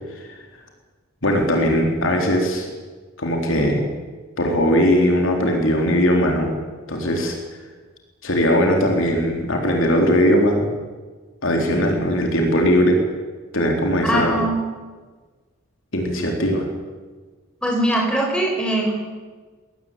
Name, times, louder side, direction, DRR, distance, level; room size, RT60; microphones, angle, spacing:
voice 1, 1.2-2.7 3.2-3.8 4.4-6.5 6.9-7.4 8.2-10.7 11.4-13.0 13.5-14.4 15.9-16.7, equal, 65° left, 1 dB, 4.0 m, -19 dB
voice 2, 14.1-14.6 17.6-19.0, right 1 dB, 5° left, -1 dB, 6.6 m, -21 dB
22.0 x 18.0 x 9.0 m, 1.4 s
head